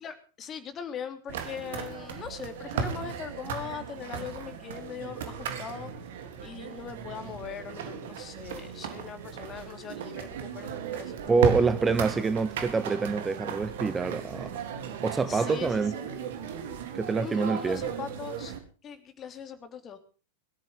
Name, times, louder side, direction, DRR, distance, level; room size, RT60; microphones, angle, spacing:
voice 1, 0.0-5.9 6.4-11.5 12.2-12.3 12.6-12.8 15.2-16.1 17.2-18.5 18.8-20.0, left 7 dB, 25° left, 3.2 m, -41 dB
sound 1, 1.3-18.6, right 6 dB, 55° right, 3.3 m, -36 dB
voice 2, 11.3-14.6 15.0-15.9 16.9-17.8, right 4 dB, 15° right, 1.0 m, -26 dB
23.0 x 13.5 x 3.8 m
figure-of-eight pair, 90°, 0 cm